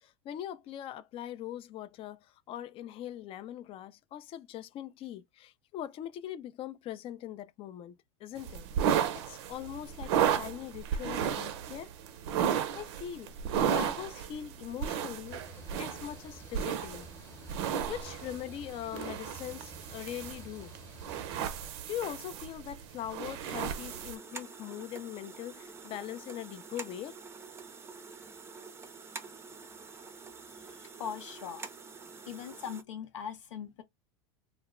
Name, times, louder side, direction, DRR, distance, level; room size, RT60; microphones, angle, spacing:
voice 1, 0.0-11.9 12.5-13.3 13.7-15.4 15.8-17.1 17.9-20.7 21.9-27.2, left 11 dB, 35° left, 0.4 m, -41 dB
sound 1, 8.4-24.2, right 8 dB, 65° right, 0.5 m, -34 dB
sound 2, 15.3-21.7, left 1 dB, 15° left, 0.9 m, -52 dB
sound 3, 23.4-32.8, right 4 dB, 15° right, 0.5 m, -47 dB
voice 2, 30.8-31.7 32.3-33.8, left 8 dB, 85° left, 0.7 m, -40 dB
2.1 x 2.0 x 3.5 m
hypercardioid pair, 100°, 15 cm